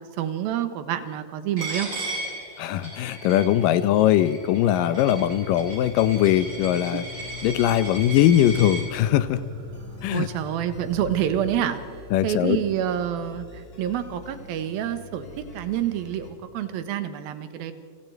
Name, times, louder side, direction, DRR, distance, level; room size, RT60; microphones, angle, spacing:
voice 1, 0.2-1.9 10.1-11.8 12.2-17.7, right 10 dB, 75° right, 10 dB, 2.9 m, -27 dB
Coin (dropping), 1.6-8.8, right 2 dB, 35° right, 6.5 m, -36 dB
voice 2, 2.6-9.4 10.0-10.3 12.1-12.6, left 12 dB, 75° left, 14 dB, 2.1 m, -21 dB
sound 1, 3.6-16.3, left 2 dB, 35° left, 2.9 m, -46 dB
sound 2, 4.7-11.5, left 1 dB, 55° right, 2.3 m, -40 dB
29.0 x 24.5 x 4.6 m, 2.1 s
omnidirectional pair, 4.4 m